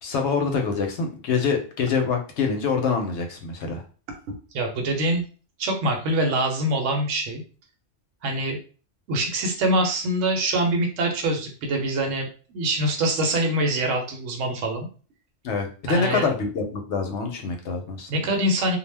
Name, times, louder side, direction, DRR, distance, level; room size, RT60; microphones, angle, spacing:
voice 1, 0.0-3.8 15.4-18.1, left 5 dB, 70° left, 4 dB, 0.8 m, -25 dB
voice 2, 4.3-5.2 5.6-7.4 8.2-8.6 9.1-14.9 15.9-16.3 18.1-18.8, right 1 dB, 80° right, 2 dB, 1.0 m, -24 dB
2.3 x 2.1 x 3.2 m, 0.37 s
omnidirectional pair, 1.2 m